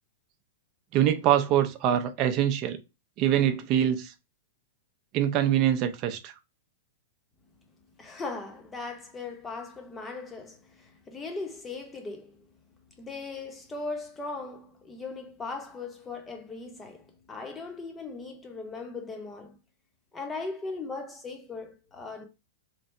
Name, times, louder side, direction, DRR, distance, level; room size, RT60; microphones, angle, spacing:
voice 1, 0.9-2.8 3.2-4.1 5.1-6.3, right 10 dB, 35° right, 0.6 m, -24 dB
voice 2, 8.0-12.5 13.0-19.6 20.1-22.2, left 3 dB, 15° left, 0.9 m, -38 dB
3.3 x 2.7 x 4.2 m
supercardioid pair, 150°, 0 cm